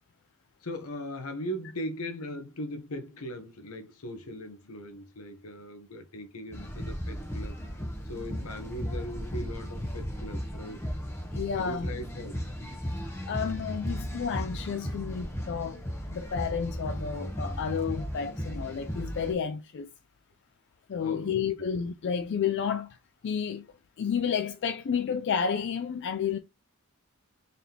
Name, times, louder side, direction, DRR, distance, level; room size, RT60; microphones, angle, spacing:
voice 1, 0.6-7.7 8.0-10.9 11.5-12.4 21.0-21.5, equal, 75° left, 0.9 m, -39 dB
sound 1, 6.5-19.3, equal, 10° left, 0.8 m, -36 dB
voice 2, 11.3-11.9 13.3-15.8 16.1-19.9 20.9-23.0 23.2-23.7 24.0-26.4, left 7 dB, 50° left, 0.3 m, -31 dB
4.0 x 3.4 x 2.8 m
head